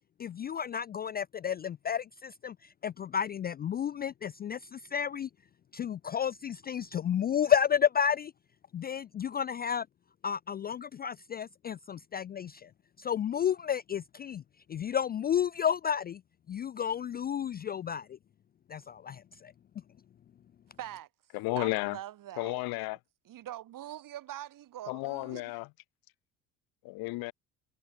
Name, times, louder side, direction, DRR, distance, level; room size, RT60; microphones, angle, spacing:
voice 1, 0.2-5.3 5.7-8.3 8.7-9.9 10.2-12.7 13.0-14.4 14.7-16.2 16.5-18.2 18.7-19.5, left 8 dB, 25° left, 0.4 m, -31 dB
voice 2, 20.8-21.1 21.6-22.6 23.3-25.5, right 13 dB, 60° right, 4.1 m, -43 dB
voice 3, 21.3-22.0 22.4-23.0 24.9-25.7 26.8-27.3, left 23 dB, 75° left, 1.7 m, -33 dB
supercardioid pair, 75°, 37 cm